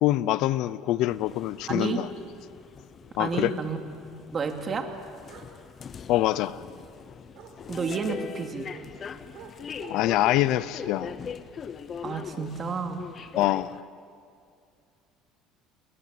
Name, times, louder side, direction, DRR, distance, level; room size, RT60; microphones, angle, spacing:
voice 1, 0.0-2.1 3.2-3.5 6.1-6.6 9.9-11.1 13.4-13.8, left 15 dB, 65° left, 17 dB, 0.7 m, -25 dB
sound 1, 1.1-13.8, left 7 dB, 35° left, 1.0 m, -42 dB
voice 2, 1.7-2.0 3.2-3.8 4.3-4.9 7.7-8.7 12.0-13.0, right 5 dB, 30° right, 5 dB, 2.6 m, -30 dB
Bark, 5.3-5.5 6.1-6.7 7.3-7.5 8.1-8.2 8.7-8.9 9.3-9.5 9.8-10.5 10.8-11.0, right 9 dB, 60° right, 4.8 m, -47 dB
29.5 x 22.0 x 7.7 m, 2.4 s
cardioid pair, 125°, 0 cm